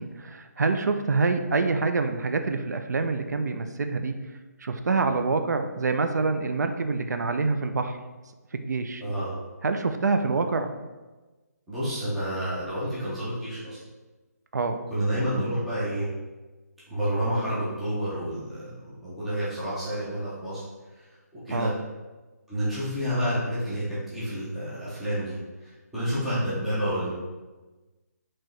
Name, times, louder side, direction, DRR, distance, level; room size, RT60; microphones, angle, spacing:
voice 1, 0.0-4.1 4.6-8.0 8.5-9.0 9.6-10.7 14.5-14.8 21.5-21.7, right 4 dB, 80° right, 7 dB, 0.4 m, -26 dB
voice 2, 9.0-9.3 10.3-10.4 11.7-13.8 14.9-16.1 16.9-18.7 19.0-20.6 20.9-21.0 21.5-21.7 22.5-27.1, equal, ahead, -12 dB, 0.4 m, -29 dB
4.5 x 3.0 x 3.1 m, 1.2 s
hypercardioid pair, 175°, 9 cm